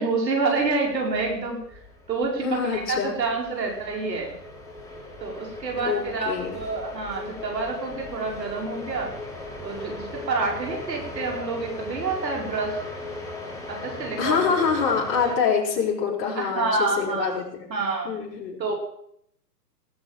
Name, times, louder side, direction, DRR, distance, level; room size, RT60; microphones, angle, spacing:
voice 1, 0.0-1.6 2.1-4.3 5.2-9.1 9.6-12.8 13.7-14.5 16.4-17.4 17.7-18.1 18.6-18.7, right 3 dB, 80° right, 0 dB, 5.3 m, -28 dB
sound 1, 0.6-15.3, left 2 dB, 5° left, 2.9 m, -38 dB
voice 2, 2.3-3.1 5.9-6.6 14.2-17.7 18.0-18.6, left 6 dB, 45° left, -3 dB, 5.2 m, -25 dB
18.5 x 7.7 x 7.4 m, 0.71 s
hypercardioid pair, 135°, 49 cm